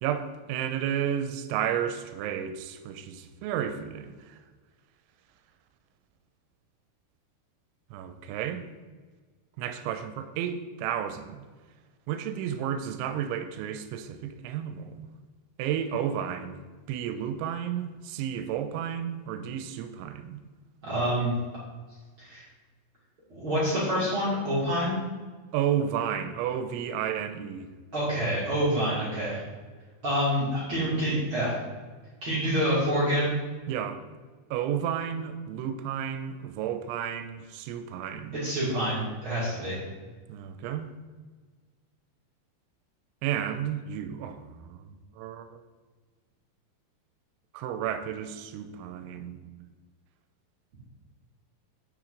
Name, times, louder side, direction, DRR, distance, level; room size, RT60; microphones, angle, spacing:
voice 1, 0.0-4.4 7.9-8.6 9.6-11.4 12.1-15.1 15.6-16.6 16.9-20.4 25.5-27.7 33.7-34.0 34.5-38.3 40.3-40.9 43.2-45.6 47.5-49.7, right 9 dB, 90° right, 9 dB, 3.0 m, -32 dB
voice 2, 20.8-21.3 22.2-22.4 23.3-25.0 27.9-29.4 30.0-31.5 32.2-33.3 38.3-39.8, equal, 35° right, -9 dB, 2.3 m, -27 dB
9.1 x 7.2 x 3.8 m, 1.4 s
omnidirectional pair, 5.3 m